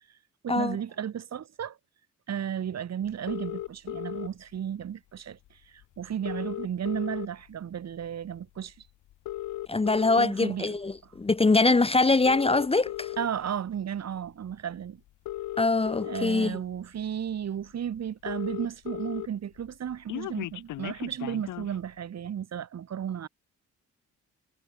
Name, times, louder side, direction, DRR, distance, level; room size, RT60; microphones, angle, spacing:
voice 1, 0.4-1.8 2.3-8.7 10.2-10.7 13.2-15.0 16.0-23.3, right 9 dB, 60° right, 6.2 m, -34 dB
sound 1, 3.3-4.3 5.5-5.6 5.8-5.9 6.1-7.5 8.0-8.3 9.1-10.3 11.0-11.2 12.1-13.3 14.5-14.6 15.1-16.3 16.9-17.0 17.3-17.4 17.7-17.8 18.0-19.3 19.6-21.7, left 14 dB, 85° left, 2.7 m, -36 dB
voice 2, 9.7-13.1 15.6-16.6, left 3 dB, 20° left, 1.3 m, -23 dB
cardioid pair, 90°, 30 cm